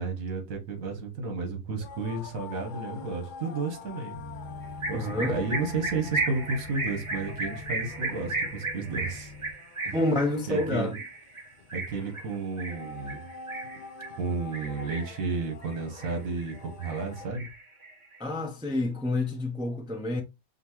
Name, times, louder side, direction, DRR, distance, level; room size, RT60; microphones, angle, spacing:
voice 1, 0.0-4.2 4.8-9.3 9.8-9.9 10.5-10.9 11.7-13.2 14.2-17.5, right 4 dB, 70° right, 1.5 m, -32 dB
sound 1, 1.8-17.3, left 5 dB, 90° left, 0.4 m, -46 dB
sound 2, 4.1-9.5, left 2 dB, 35° left, 1.2 m, -44 dB
sound 3, 4.8-14.2 14.5-15.2 15.6-16.5 16.8-18.2, right 3 dB, 25° right, 1.0 m, -35 dB
voice 2, 4.9-5.6 9.9-11.0 18.2-20.2, left 2 dB, 5° right, 0.3 m, -29 dB
5.2 x 2.9 x 2.9 m
omnidirectional pair, 1.5 m